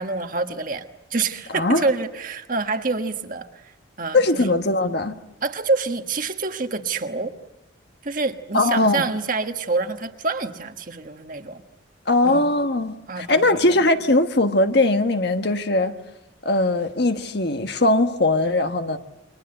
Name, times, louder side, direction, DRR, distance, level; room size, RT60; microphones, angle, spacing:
voice 1, 0.0-3.5 4.0-4.5 5.4-7.3 8.0-11.6 12.2-12.5 13.1-13.8, right 3 dB, 40° right, 1.4 m, -27 dB
voice 2, 4.1-5.1 8.5-9.0 12.1-15.9 16.4-19.0, left 2 dB, 55° left, 1.4 m, -20 dB
29.5 x 24.0 x 7.9 m
head